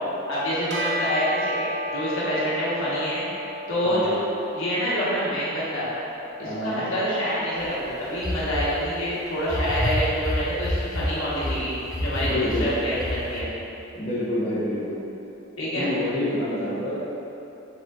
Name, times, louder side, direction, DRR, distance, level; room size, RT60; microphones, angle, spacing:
voice 1, 0.3-3.3 3.7-4.2 4.5-5.9 6.4-11.7 12.0-13.5 15.6-15.9, equal, 75° left, -9 dB, 1.2 m, -26 dB
Bell, 0.7-10.4, equal, 55° right, 0.7 m, -35 dB
voice 2, 6.4-6.8 12.2-12.7 14.0-15.0 15.7-17.0, left 1 dB, 35° left, -10 dB, 0.7 m, -27 dB
sound 1, 7.6-7.7 8.2-8.8 9.4-11.6 11.9-13.4, left 1 dB, 15° left, 0.3 m, -27 dB
5.2 x 3.8 x 2.4 m, 3.0 s
head